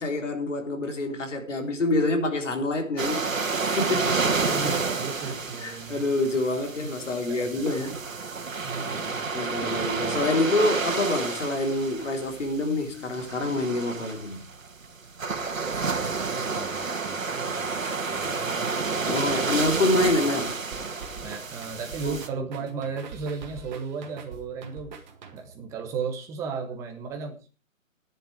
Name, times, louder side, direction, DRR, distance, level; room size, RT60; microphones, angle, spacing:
voice 1, 0.0-3.2 3.8-4.2 4.4-4.7 5.6-8.0 9.3-14.4 19.1-20.6 22.0-22.5, left 2 dB, 65° left, 3.7 m, -27 dB
sound 1, 3.0-22.3, right 4 dB, 70° right, 2.1 m, -30 dB
voice 2, 3.9-6.0 6.8-7.7 8.6-9.2 15.3-19.6 20.2-20.3 21.2-24.9 25.3-27.5, right 5 dB, 5° right, 1.0 m, -36 dB
sound 2, 20.7-25.7, right 5 dB, 35° right, 1.8 m, -44 dB
14.0 x 10.5 x 4.8 m
figure-of-eight pair, 145°, 40 cm